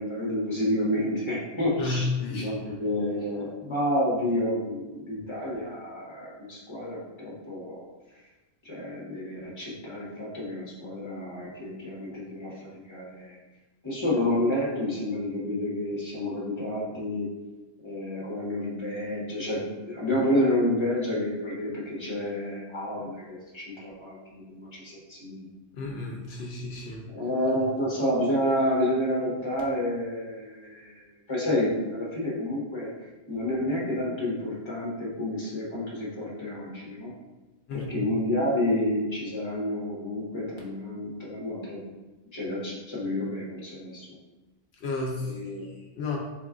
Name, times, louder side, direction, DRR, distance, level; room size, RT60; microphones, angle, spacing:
voice 1, 0.0-7.8 8.6-13.4 13.8-17.3 17.8-25.5 27.1-31.0 31.3-32.9 33.3-37.1 37.7-41.8 42.3-44.1 45.2-45.7, left 1 dB, 30° left, -5 dB, 1.0 m, -29 dB
voice 2, 1.8-2.8 25.7-27.1 27.5-27.7 37.7-38.1 44.7-46.2, left 3 dB, 75° left, -1 dB, 0.8 m, -33 dB
3.6 x 2.3 x 3.6 m, 1.1 s
omnidirectional pair, 1.1 m